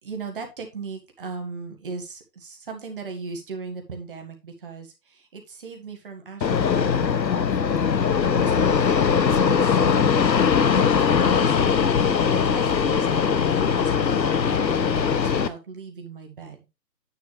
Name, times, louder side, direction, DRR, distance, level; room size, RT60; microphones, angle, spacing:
voice 1, 0.0-7.5 7.9-16.7, right 4 dB, 35° right, 4 dB, 1.7 m, -38 dB
Fixed-wing aircraft airplane, 6.4-15.5, left 6 dB, 90° left, 1.0 m, -20 dB
9.6 x 6.7 x 3.3 m, 0.26 s
figure-of-eight pair, 160°, 49 cm